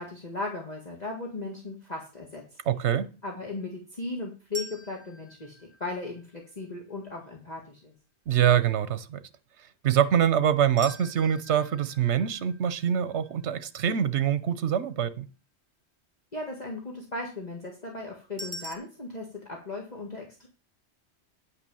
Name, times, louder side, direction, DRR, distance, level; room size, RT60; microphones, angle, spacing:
voice 1, 0.0-2.5 3.2-7.9 16.3-20.5, left 2 dB, 35° left, 1.9 m, -37 dB
voice 2, 2.7-3.1 8.3-9.2 9.8-15.3, right 9 dB, 80° right, 1.1 m, -24 dB
sound 1, 4.5-6.6 10.8-13.9 18.4-18.7, equal, 15° right, 1.4 m, -44 dB
9.6 x 5.8 x 6.9 m
omnidirectional pair, 1.2 m